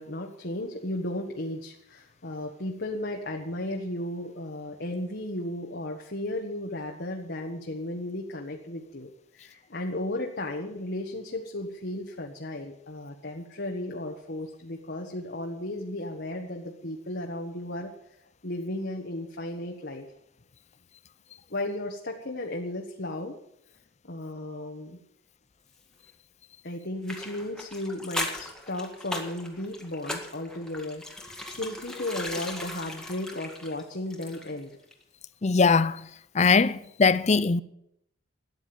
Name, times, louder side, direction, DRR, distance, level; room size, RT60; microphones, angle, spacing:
voice 1, 0.0-17.9 18.4-20.0 21.5-23.4 24.0-25.0 26.6-34.7, left 1 dB, 55° left, 1.5 m, -35 dB
sound 1, 27.0-34.6 34.9-35.0, left 1 dB, 5° left, 1.9 m, -38 dB
voice 2, 35.4-36.0 36.3-37.6, left 4 dB, 35° left, 0.6 m, -21 dB
13.5 x 9.8 x 8.8 m
head